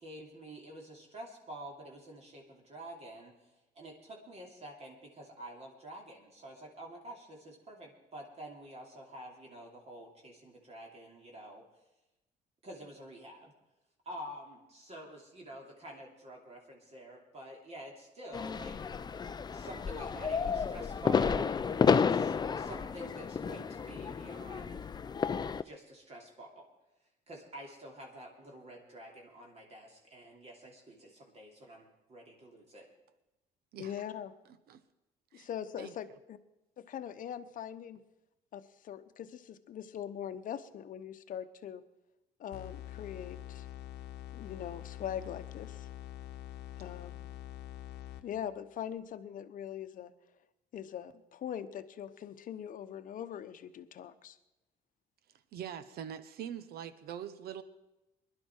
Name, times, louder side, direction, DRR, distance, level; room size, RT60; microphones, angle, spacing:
voice 1, 0.0-11.6 12.6-13.5 14.0-18.8 19.5-24.9 25.6-26.7 27.3-32.9, right 1 dB, 40° right, -1 dB, 2.9 m, -48 dB
sound 1, 18.3-25.6, left 6 dB, 25° left, 0.5 m, -31 dB
voice 2, 33.8-34.3 35.3-36.4 36.8-38.0 38.5-41.8 42.4-43.7 44.3-45.9 46.8-47.1 48.2-50.1 50.7-54.4, left 9 dB, 50° left, 11 dB, 0.9 m, -42 dB
sound 2, 42.5-48.6, left 13 dB, 75° left, 1.0 m, -45 dB
voice 3, 55.5-57.6, right 9 dB, 70° right, 13 dB, 1.0 m, -43 dB
21.0 x 11.5 x 4.5 m, 0.98 s
cardioid pair, 110°, 17 cm